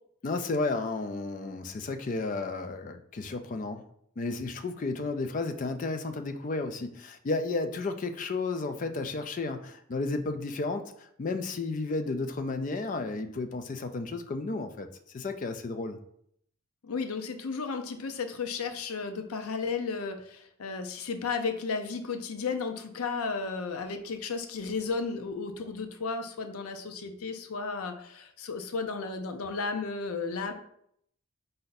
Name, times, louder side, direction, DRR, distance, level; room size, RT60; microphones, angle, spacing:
voice 1, 0.2-3.8 4.2-14.9 15.1-16.0, left 3 dB, 35° left, 8 dB, 0.3 m, -32 dB
voice 2, 16.8-30.5, left 4 dB, 90° left, 7 dB, 0.5 m, -34 dB
4.4 x 2.6 x 3.9 m, 0.70 s
head